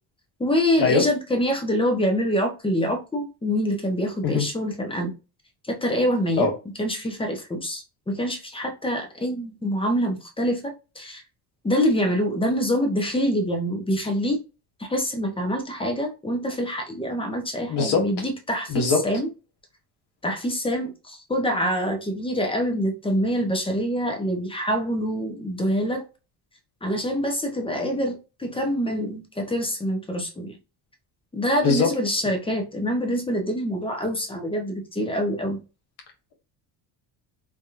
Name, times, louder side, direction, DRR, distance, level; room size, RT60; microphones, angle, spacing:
voice 1, 0.4-5.1 5.7-6.5 6.8-11.2 11.6-14.4 14.8-19.3 20.2-26.1 26.8-30.6 31.3-35.6, equal, 10° left, 0.7 m, -25 dB
voice 2, 17.7-18.1 18.7-19.0 31.6-31.9, left 4 dB, 60° left, 1.4 m, -21 dB
3.3 x 2.3 x 2.8 m
cardioid pair, 110°, 46 cm